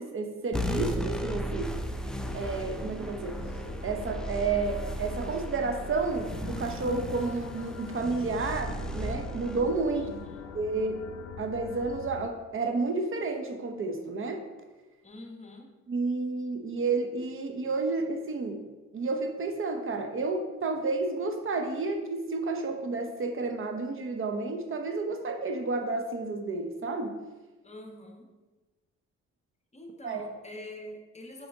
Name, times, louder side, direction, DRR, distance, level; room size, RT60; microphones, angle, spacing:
voice 1, 0.0-1.7 2.3-3.4 3.8-10.1 10.5-11.0 11.4-14.4 15.9-18.6 18.9-27.2 30.0-30.3, right 3 dB, 45° right, 4 dB, 0.8 m, -31 dB
sound 1, 0.5-11.4, equal, ahead, 0.5 m, -36 dB
sound 2, 3.4-12.3, left 10 dB, 60° left, 0.4 m, -45 dB
voice 2, 9.9-10.5 15.0-15.7 27.6-28.3 29.7-31.5, left 1 dB, 20° left, 2 dB, 1.1 m, -45 dB
6.0 x 5.0 x 3.6 m, 1.2 s
cardioid pair, 90°, 30 cm